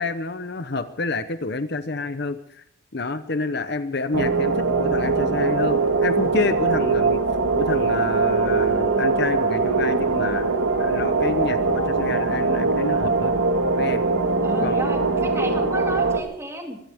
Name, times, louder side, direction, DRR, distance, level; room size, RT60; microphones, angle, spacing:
voice 1, 0.0-2.6 2.9-7.2 7.5-10.5 10.8-13.4 13.7-14.0 14.6-15.0, left 3 dB, 55° left, 11 dB, 0.9 m, -28 dB
sound 1, 4.1-16.2, right 3 dB, 90° right, 1.9 m, -22 dB
voice 2, 14.4-16.8, right 1 dB, 15° right, 2 dB, 2.8 m, -32 dB
23.5 x 16.5 x 3.6 m, 0.75 s
head